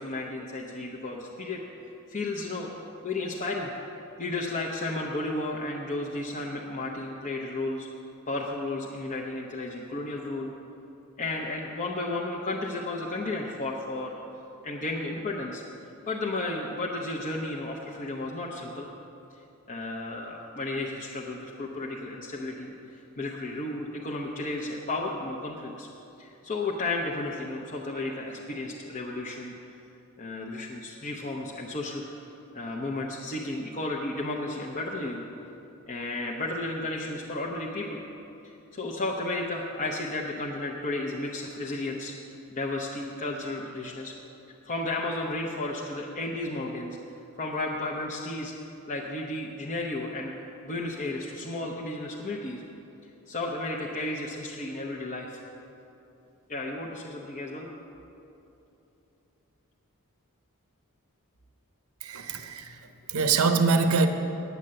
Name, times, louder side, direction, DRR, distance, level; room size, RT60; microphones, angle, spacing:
voice 1, 0.0-1.6 2.1-2.7 3.0-3.7 4.2-7.9 8.3-10.5 11.2-14.1 14.6-15.6 16.1-18.9 19.7-22.7 23.2-25.9 26.2-29.5 30.2-32.1 32.5-35.2 35.9-38.0 38.4-42.1 42.5-44.1 44.6-47.0 47.4-48.5 48.9-50.3 50.6-52.6 53.3-55.4 56.5-57.7, left 2 dB, 40° left, -3 dB, 0.8 m, -33 dB
voice 2, 62.0-64.1, right 4 dB, 85° right, 7 dB, 0.7 m, -24 dB
9.7 x 8.1 x 7.6 m, 2.9 s
head